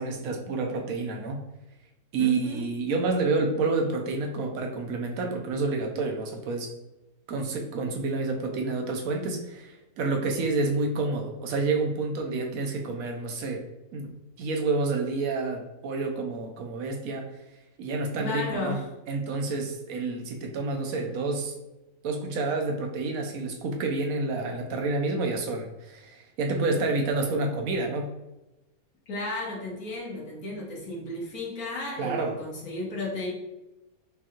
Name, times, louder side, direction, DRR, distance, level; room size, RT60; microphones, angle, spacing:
voice 1, 0.0-1.4 2.1-6.7 7.3-13.6 13.9-14.1 14.4-17.3 17.8-18.8 19.1-21.5 22.0-28.1 32.0-32.4, right 3 dB, 70° right, 2 dB, 1.1 m, -29 dB
voice 2, 2.2-2.7 18.2-18.9 29.1-33.3, left 2 dB, 80° left, -3 dB, 1.6 m, -34 dB
5.2 x 2.3 x 2.9 m, 0.98 s
omnidirectional pair, 1.5 m